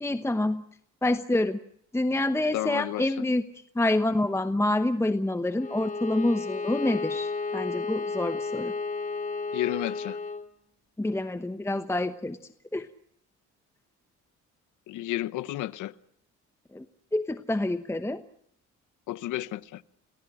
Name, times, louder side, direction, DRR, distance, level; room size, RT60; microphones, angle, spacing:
voice 1, 0.0-0.6 1.0-1.6 1.9-3.4 3.7-8.7 11.0-12.4 12.7-12.9 16.7-16.8 17.1-18.2, left 1 dB, 10° left, 1.0 m, -27 dB
voice 2, 2.5-3.1 9.5-10.2 14.9-15.9 19.1-19.8, left 15 dB, 85° left, 0.9 m, -31 dB
Bowed string instrument, 5.5-10.5, left 4 dB, 25° left, 2.5 m, -32 dB
29.0 x 19.5 x 6.3 m
cardioid pair, 90°, 30 cm